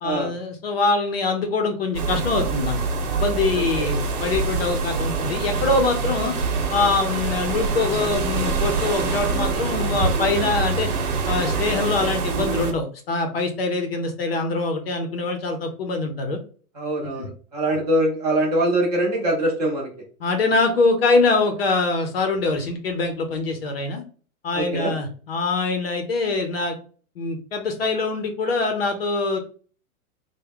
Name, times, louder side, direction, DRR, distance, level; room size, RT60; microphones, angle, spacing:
voice 1, 0.0-2.8 3.1-6.3 6.7-10.9 11.3-16.4 17.2-17.3 20.2-24.0 24.4-26.8 27.2-29.4, left 3 dB, 45° left, 6 dB, 0.5 m, -24 dB
sound 1, 1.9-12.7, right 4 dB, 85° right, 1.0 m, -25 dB
voice 2, 3.5-3.9 16.8-19.9 24.5-24.9, right 1 dB, 30° right, -1 dB, 0.6 m, -23 dB
3.4 x 2.1 x 3.4 m, 0.41 s
hypercardioid pair, 170°, 45 cm